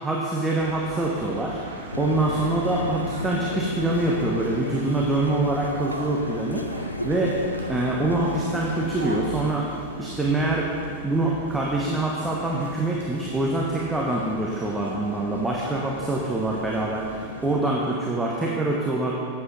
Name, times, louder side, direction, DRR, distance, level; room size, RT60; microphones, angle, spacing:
voice 1, 0.0-1.6 2.0-6.6 7.0-9.7 10.0-10.7 11.0-19.1, right 2 dB, 10° right, -3 dB, 1.2 m, -25 dB
sound 1, 0.6-17.6, right 2 dB, 80° right, 1.3 m, -39 dB
sound 2, 1.9-9.5, left 1 dB, 85° left, 0.4 m, -33 dB
11.0 x 8.3 x 4.0 m, 2.2 s
figure-of-eight pair, 90°, 0 cm